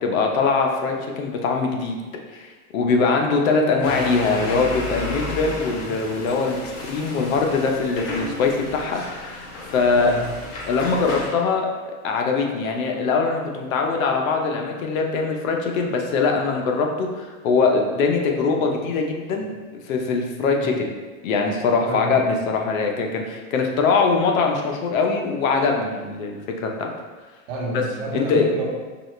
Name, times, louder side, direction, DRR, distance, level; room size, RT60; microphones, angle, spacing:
voice 1, 0.0-2.0 2.3-2.5 2.7-6.6 6.9-9.5 9.7-10.1 10.6-20.8 21.2-26.9 28.1-28.5, left 4 dB, 70° left, 2 dB, 0.8 m, -22 dB
voice 2, 3.7-4.1 9.8-10.2 20.4-20.7 21.8-22.2 27.5-28.7, right 2 dB, 50° right, -3 dB, 1.2 m, -31 dB
sound 1, 3.8-11.3, left 2 dB, 40° left, 0.9 m, -32 dB
4.8 x 2.4 x 3.2 m, 1.3 s
supercardioid pair, 140°, 42 cm